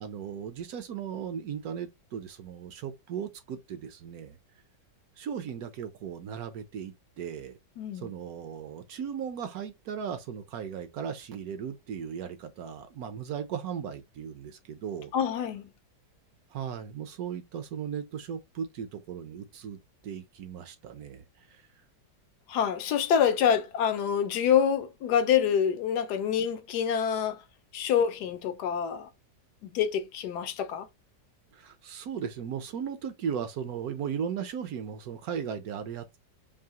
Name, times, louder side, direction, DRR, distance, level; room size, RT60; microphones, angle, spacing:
voice 1, 0.0-4.4 5.2-7.6 7.9-15.1 16.5-21.6 31.5-36.2, right 7 dB, 65° right, 1.0 m, -37 dB
voice 2, 7.8-8.1 15.1-15.7 22.5-27.4 27.7-29.1 29.6-30.9, left 8 dB, 70° left, 1.1 m, -26 dB
4.7 x 2.7 x 2.8 m
omnidirectional pair, 1.9 m